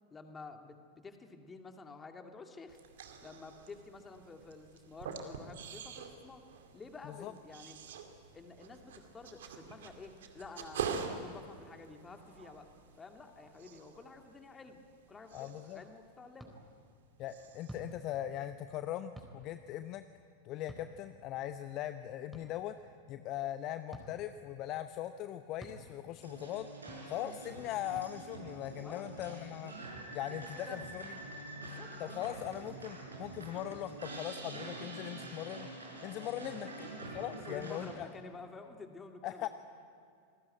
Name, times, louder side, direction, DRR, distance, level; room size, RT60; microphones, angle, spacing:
voice 1, 0.1-2.8 3.2-6.4 6.7-7.8 8.3-12.7 13.0-14.8 15.1-16.5 28.8-29.1 30.3-30.9 31.6-32.6 36.6-36.9 37.3-39.5, left 3 dB, 15° left, 5 dB, 2.4 m, -51 dB
sound 1, 2.7-17.0 17.3-17.9, right 6 dB, 60° right, 2.4 m, -46 dB
voice 2, 15.3-15.8 17.2-20.0 20.4-22.7 23.1-26.7 27.1-29.7 30.1-31.2 32.0-35.7 36.0-36.7 37.1-38.1 39.2-39.5, left 12 dB, 40° left, 11 dB, 0.8 m, -40 dB
sound 2, 16.4-16.5 17.7-17.9 19.2-19.3 20.7-20.9 22.3-22.4 23.9-24.1 25.6-25.8 26.9-27.0 27.9-28.1, right 1 dB, 5° right, 4.1 m, -48 dB
sound 3, 26.2-37.9, right 2 dB, 75° right, 6.0 m, -46 dB
27.5 x 20.0 x 9.1 m, 2.4 s
figure-of-eight pair, 90°, 0 cm